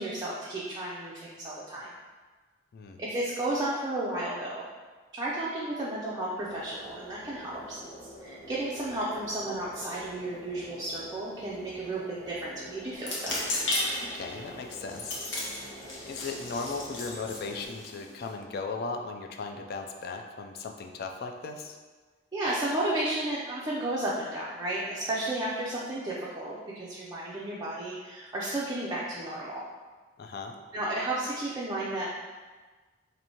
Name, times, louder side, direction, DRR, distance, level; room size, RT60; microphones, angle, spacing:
voice 1, 0.0-1.9 3.0-4.6 5.1-7.8 8.2-13.4 22.3-29.6 30.7-32.2, right 1 dB, 20° right, -6 dB, 0.4 m, -33 dB
sound 1, 6.4-17.7, equal, 35° left, 1.0 m, -47 dB
sound 2, 13.0-18.3, left 1 dB, 70° left, 0.8 m, -35 dB
voice 2, 14.0-15.3 16.0-21.8 30.2-30.6, left 4 dB, 55° left, 4 dB, 0.3 m, -37 dB
2.9 x 2.6 x 4.2 m, 1.4 s
head